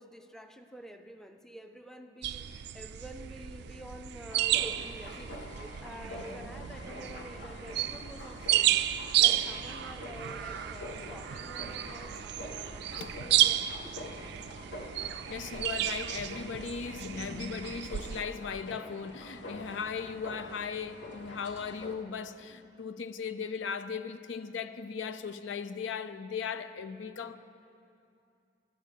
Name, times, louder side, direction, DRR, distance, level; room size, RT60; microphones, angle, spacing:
voice 1, 0.0-8.7 9.2-14.4 17.3-17.5, equal, 5° left, 0.5 m, -48 dB
sound 1, 2.2-18.2, right 13 dB, 60° right, 0.3 m, -32 dB
sound 2, 4.3-22.0, left 1 dB, 65° left, 1.3 m, -46 dB
voice 2, 15.1-27.4, left 6 dB, 85° left, 0.5 m, -38 dB
13.0 x 9.7 x 6.8 m
head